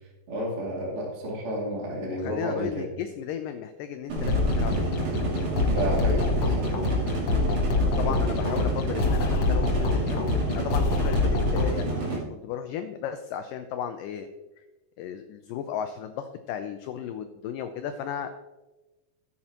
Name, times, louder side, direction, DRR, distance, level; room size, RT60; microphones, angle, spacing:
voice 1, 0.3-2.9 5.7-6.2 6.6-6.7 8.0-8.2, right 1 dB, 35° right, -3 dB, 3.0 m, -31 dB
voice 2, 2.0-5.1 7.8-10.3 10.5-14.3 14.6-14.7 15.0-18.3, left 8 dB, 80° left, 7 dB, 1.9 m, -35 dB
sound 1, 4.1-11.8, left 3 dB, 65° left, 1.6 m, -25 dB
sound 2, 4.1-12.2, right 3 dB, 65° right, 4.2 m, -31 dB
14.0 x 8.8 x 2.9 m, 1.1 s
omnidirectional pair, 4.5 m